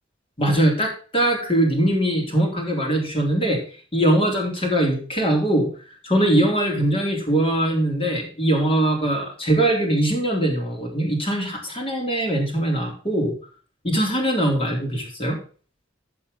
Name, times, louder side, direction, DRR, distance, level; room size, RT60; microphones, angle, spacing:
voice 1, 0.4-3.6 3.9-5.7 6.0-13.4 13.8-15.4, right 1 dB, 25° left, 0 dB, 3.9 m, -21 dB
15.5 x 5.4 x 4.0 m, 0.40 s
head